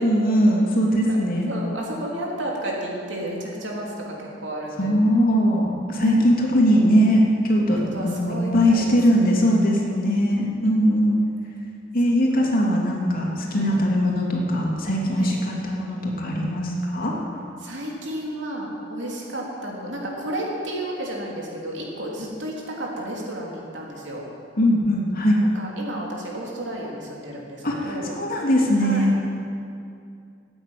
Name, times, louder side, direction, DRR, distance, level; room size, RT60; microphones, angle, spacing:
voice 1, 0.0-1.5 4.8-11.2 11.9-17.2 24.6-25.4 27.6-29.2, equal, 50° left, -2 dB, 2.7 m, -20 dB
voice 2, 1.5-4.1 4.4-4.9 5.9-6.2 7.9-8.8 9.9-10.8 12.3-12.6 13.5-13.8 15.2-15.4 17.6-24.2 25.5-28.1 28.8-29.1, right 1 dB, 70° right, -2 dB, 3.2 m, -32 dB
14.5 x 8.9 x 9.2 m, 2.4 s
head